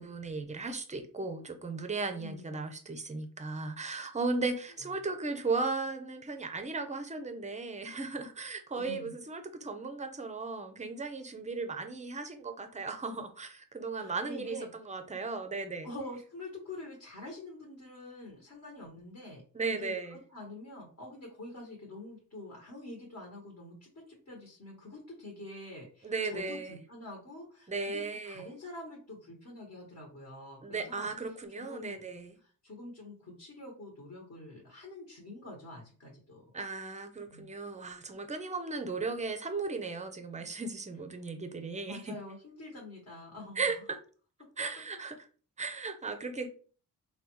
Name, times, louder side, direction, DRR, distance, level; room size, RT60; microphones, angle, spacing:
voice 1, 0.0-15.9 19.5-20.2 26.0-26.8 27.7-28.5 30.6-32.4 36.5-42.2 43.6-44.0 44.6-45.3 45.6-46.5, right 3 dB, 20° right, 0.5 m, -36 dB
voice 2, 2.2-2.6 4.8-4.9 8.7-9.1 13.9-14.7 15.8-19.4 19.7-31.1 31.5-32.0 32.4-36.4 37.3-37.5 41.8-43.7, left 2 dB, 45° left, 1.1 m, -46 dB
3.4 x 2.3 x 3.0 m
cardioid pair, 85°, 40 cm